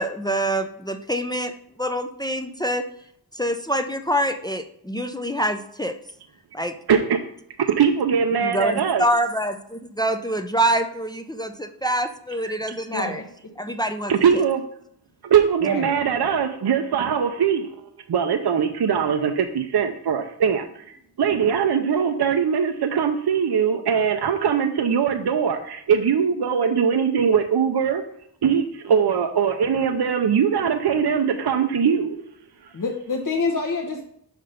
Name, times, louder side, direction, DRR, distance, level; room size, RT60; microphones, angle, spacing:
voice 1, 0.0-2.8 3.3-6.0 6.5-6.7 8.3-13.2 13.6-14.1, right 1 dB, 10° left, 7 dB, 0.4 m, -25 dB
voice 2, 6.9-7.2 7.7-9.0 14.1-14.6 15.2-17.7 18.1-20.8 21.2-28.0 28.4-32.2, right 7 dB, 70° right, 6 dB, 0.6 m, -21 dB
voice 3, 12.9-13.2 13.6-13.7 15.6-15.9 32.7-34.0, left 4 dB, 50° left, 0 dB, 0.9 m, -27 dB
5.8 x 5.5 x 5.0 m, 0.69 s
wide cardioid pair, 90°, 41 cm